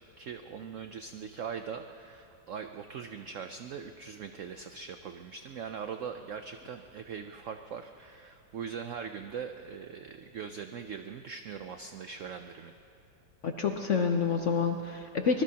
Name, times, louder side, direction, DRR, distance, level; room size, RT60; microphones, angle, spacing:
voice 1, 0.2-12.7, right 6 dB, 85° right, 7 dB, 0.6 m, -41 dB
voice 2, 13.4-15.4, left 5 dB, 60° left, 5 dB, 0.8 m, -28 dB
24.5 x 20.5 x 2.9 m, 2.7 s
omnidirectional pair, 2.0 m